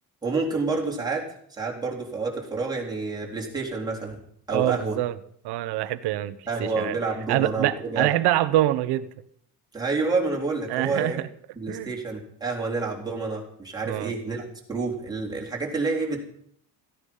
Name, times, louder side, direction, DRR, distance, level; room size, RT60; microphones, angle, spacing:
voice 1, 0.2-4.2 4.5-5.0 6.5-8.1 9.7-11.2 11.6-16.3, right 3 dB, 10° right, -2 dB, 3.9 m, -29 dB
voice 2, 4.5-5.1 5.4-7.0 7.3-9.1 10.7-11.3 11.7-11.9 13.8-14.1, right 14 dB, 85° right, 13 dB, 1.2 m, -25 dB
17.0 x 15.5 x 5.6 m, 0.65 s
cardioid pair, 165°, 39 cm